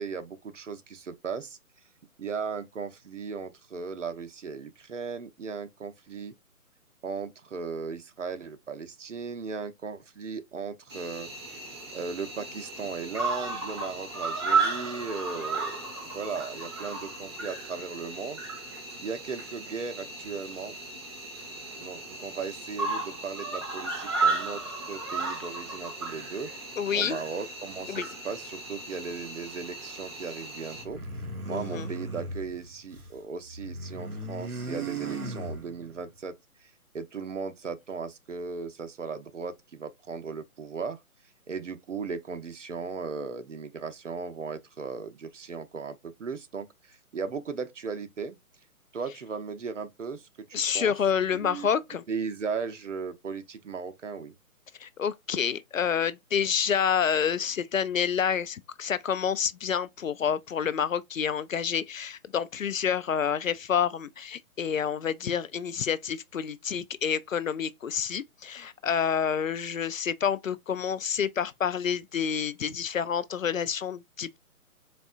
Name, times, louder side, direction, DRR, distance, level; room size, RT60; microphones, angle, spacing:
voice 1, 0.0-1.6 2.2-6.3 7.0-11.3 11.9-15.8 16.1-18.4 19.0-20.7 21.8-24.6 24.9-26.5 26.9-31.0 31.4-36.3 36.6-41.0 41.5-48.4 48.9-50.9 51.3-51.7 52.1-54.3, right 5 dB, 55° right, 0.8 m, -37 dB
Cricket, 10.9-30.8, right 4 dB, 20° right, 0.7 m, -34 dB
voice 2, 26.8-27.2 27.9-28.1 31.5-31.9 50.5-52.0 54.8-74.4, left 7 dB, 65° left, 0.5 m, -28 dB
sound 1, 30.8-33.2 33.5-36.0, right 2 dB, 80° right, 1.2 m, -37 dB
4.1 x 3.4 x 2.3 m
figure-of-eight pair, 145°, 44 cm